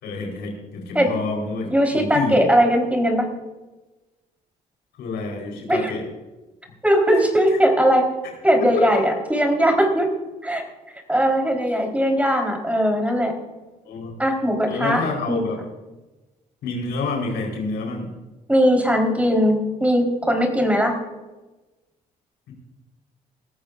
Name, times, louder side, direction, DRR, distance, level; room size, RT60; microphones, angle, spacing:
voice 1, 0.0-2.4 5.0-6.0 7.5-7.6 8.8-9.1 13.8-14.1 14.7-15.6 16.6-18.1 22.5-22.6, left 3 dB, 75° left, 0 dB, 4.3 m, -28 dB
voice 2, 1.7-3.3 5.7-5.9 6.8-8.0 8.4-10.1 10.4-10.6 11.1-13.3 14.2-15.0 15.3-15.4 18.5-20.9, equal, 10° right, 2 dB, 4.2 m, -19 dB
19.0 x 14.0 x 2.6 m, 1.1 s
supercardioid pair, 55°, 18 cm